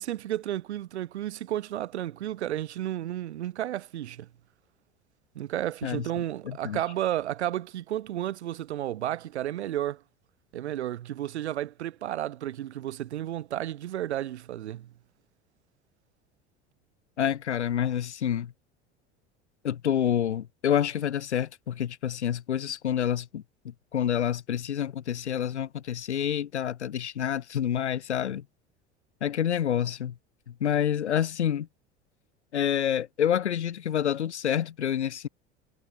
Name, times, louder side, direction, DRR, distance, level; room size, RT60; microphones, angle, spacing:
voice 1, 0.0-4.3 5.3-10.0 10.5-14.9, right 12 dB, 75° right, 2.3 m, -32 dB
voice 2, 6.4-6.8 17.2-18.5 19.6-28.4 29.2-30.1 30.5-31.7 32.5-35.3, left 9 dB, 80° left, 1.3 m, -28 dB
figure-of-eight pair, 70°, 34 cm